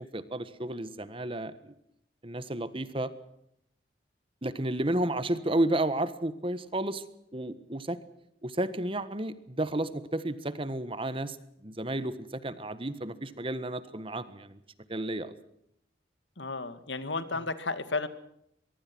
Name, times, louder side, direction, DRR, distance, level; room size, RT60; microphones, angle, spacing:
voice 1, 0.0-1.7 2.2-3.1 4.4-7.0 7.3-8.0 8.4-11.4 11.6-14.6 14.9-15.3, right 1 dB, 30° right, 13 dB, 1.5 m, -32 dB
voice 2, 16.4-18.1, left 3 dB, 90° left, 11 dB, 2.2 m, -33 dB
23.5 x 22.5 x 6.2 m, 0.75 s
head